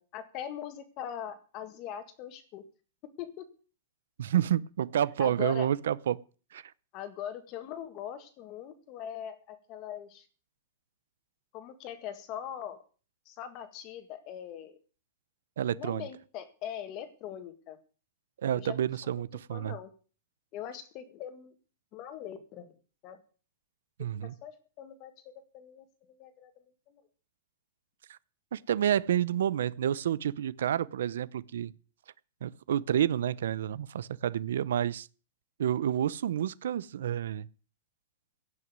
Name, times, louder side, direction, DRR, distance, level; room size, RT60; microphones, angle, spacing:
voice 1, 0.0-2.6 3.2-3.4 5.2-5.7 6.9-10.3 11.5-12.8 13.3-14.8 15.7-17.8 18.5-19.2 19.5-19.9 20.5-21.5 21.9-22.7 23.0-23.2 24.2-26.5 26.9-27.0, left 10 dB, 30° left, 1.9 m, -41 dB
voice 2, 4.2-6.2 6.5-6.6 15.6-16.1 18.4-19.8 24.0-24.3 28.1-28.2 28.5-31.7 32.4-35.1 35.6-37.5, right 10 dB, 85° right, 0.7 m, -29 dB
16.5 x 6.3 x 9.4 m
supercardioid pair, 175°, 0 cm